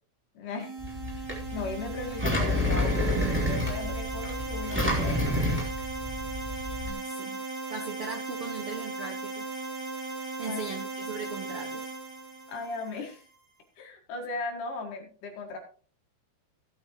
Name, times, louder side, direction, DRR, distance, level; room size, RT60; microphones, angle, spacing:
voice 1, 0.3-0.7 1.5-5.2 10.4-10.6 12.5-13.2 13.8-15.6, left 3 dB, 60° left, 3 dB, 3.1 m, -37 dB
sound 1, 0.6-13.3, right 3 dB, 50° right, 5.1 m, -37 dB
Engine, 0.8-6.9, left 1 dB, 5° right, 2.7 m, -29 dB
voice 2, 6.8-7.4 7.7-9.5 10.4-11.9, right 5 dB, 80° right, 4 dB, 1.2 m, -39 dB
17.0 x 8.7 x 3.0 m, 0.40 s
omnidirectional pair, 4.6 m